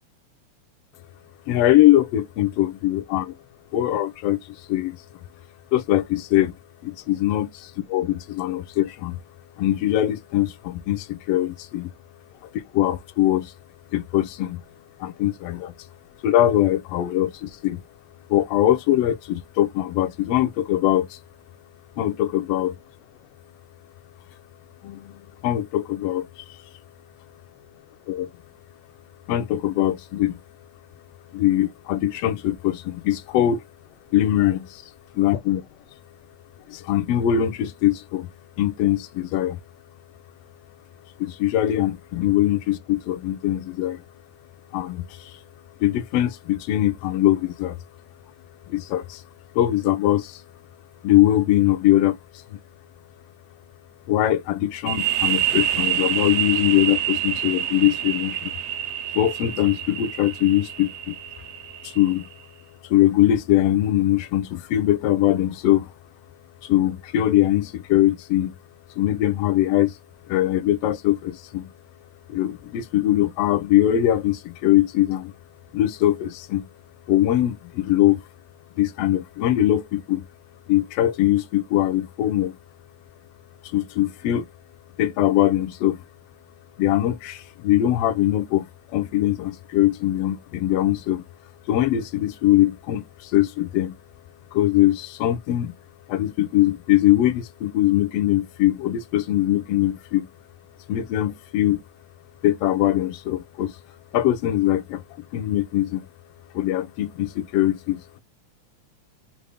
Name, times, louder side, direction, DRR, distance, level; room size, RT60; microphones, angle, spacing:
voice 1, 1.5-3.3 3.7-5.0 5.7-6.5 6.8-7.5 7.9-9.2 9.6-11.9 12.5-13.5 13.9-14.6 15.0-15.7 16.2-17.8 18.3-21.2 22.0-22.7 24.8-26.6 28.1-28.3 29.3-30.4 31.3-33.6 34.1-34.6 35.2-35.6 36.7-38.3 38.6-39.6 41.2-44.0 44.7-45.4 45.8-47.8 48.7-49.2 49.5-50.4 51.0-52.2 52.5-52.6 54.1-58.5 59.1-61.1 61.8-62.3 62.8-65.9 66.6-68.5 69.0-69.9 70.3-71.7 72.3-75.3 75.7-76.7 77.1-78.2 78.8-80.2 80.7-82.6 83.6-84.5 85.0-86.0 86.8-88.7 88.9-91.2 91.7-93.9 94.5-95.7 96.1-100.3 100.9-101.8 102.4-103.8 104.1-105.0 105.3-106.1 106.5-108.2, left 13 dB, 85° left, 1.3 m, -22 dB
sound 1, 54.9-62.3, right 11 dB, 75° right, 1.6 m, -27 dB
5.2 x 2.0 x 3.3 m
omnidirectional pair, 3.4 m